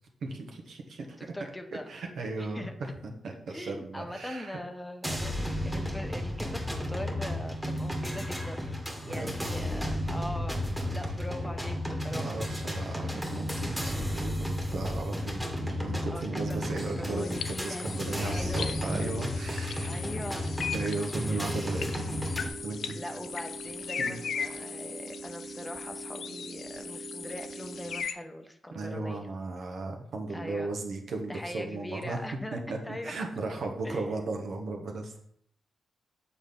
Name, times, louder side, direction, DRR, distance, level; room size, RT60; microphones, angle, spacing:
voice 1, 0.2-1.2 1.9-4.6 9.0-9.3 12.0-20.1 20.7-22.3 22.6-23.0 24.0-24.2 28.7-32.2 32.5-35.2, right 3 dB, 70° right, 2 dB, 1.1 m, -36 dB
voice 2, 1.3-1.9 2.4-2.7 3.5-8.7 9.0-10.6 10.9-12.4 16.1-19.1 19.8-20.5 21.3-21.4 22.9-29.3 30.3-30.7 31.3-32.6 32.8-33.1 33.8-34.4, left 1 dB, 10° left, 6 dB, 0.8 m, -41 dB
sound 1, 5.0-22.5, left 1 dB, 5° right, 1.4 m, -33 dB
sound 2, 17.2-28.1, left 6 dB, 75° left, 0.4 m, -39 dB
sound 3, 18.0-28.0, right 4 dB, 45° right, 0.5 m, -44 dB
7.1 x 4.2 x 3.6 m, 0.68 s
cardioid pair, 60°, 0 cm